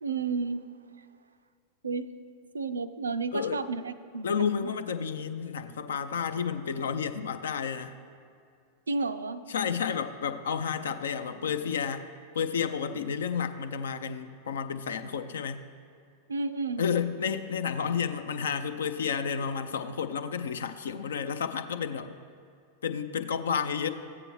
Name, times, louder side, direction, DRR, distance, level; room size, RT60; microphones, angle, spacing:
voice 1, 0.0-0.7 1.8-2.1 2.5-4.7 8.9-9.4 16.3-16.8, right 4 dB, 75° right, 12 dB, 0.4 m, -32 dB
voice 2, 4.2-7.9 9.5-12.0 12.3-15.7 16.8-22.1 22.8-23.9, left 7 dB, 65° left, 11 dB, 0.4 m, -31 dB
13.5 x 8.7 x 3.1 m, 2.4 s
figure-of-eight pair, 90°, 0 cm